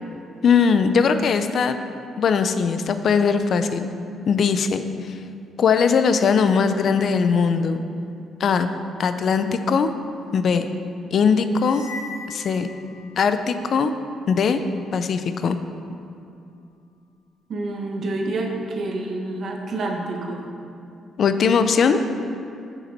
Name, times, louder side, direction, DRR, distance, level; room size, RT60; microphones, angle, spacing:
voice 1, 0.4-1.8 2.2-3.9 4.3-4.8 5.1-5.2 5.6-7.8 8.4-8.7 9.0-9.9 10.3-10.7 11.1-11.8 12.3-12.7 13.2-13.9 14.3-14.6 14.9-15.6 21.2-22.0, left 6 dB, 60° left, 9 dB, 0.4 m, -20 dB
sound 1, 11.6-13.4, left 3 dB, 85° left, 1.1 m, -39 dB
voice 2, 17.5-20.4, right 2 dB, 60° right, 1 dB, 1.1 m, -28 dB
7.2 x 6.8 x 4.2 m, 2.6 s
cardioid pair, 90°, 0 cm